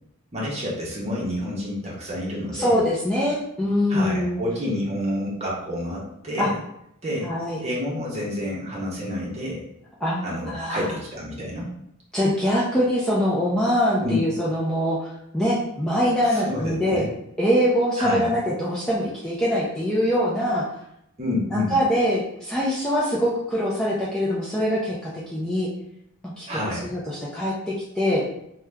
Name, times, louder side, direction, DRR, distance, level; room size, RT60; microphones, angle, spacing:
voice 1, 0.3-2.8 3.9-6.6 7.0-7.3 7.6-9.6 10.2-11.7 14.0-14.2 16.3-17.1 18.0-18.3 21.2-21.8 26.5-26.9, left 1 dB, 30° right, -4 dB, 0.9 m, -29 dB
voice 2, 2.5-4.4 6.4-6.5 7.2-7.6 10.0-10.8 12.1-17.1 17.4-20.7 21.5-25.7 26.4-28.2, equal, 5° left, -7 dB, 0.4 m, -23 dB
2.8 x 2.3 x 3.3 m, 0.78 s
head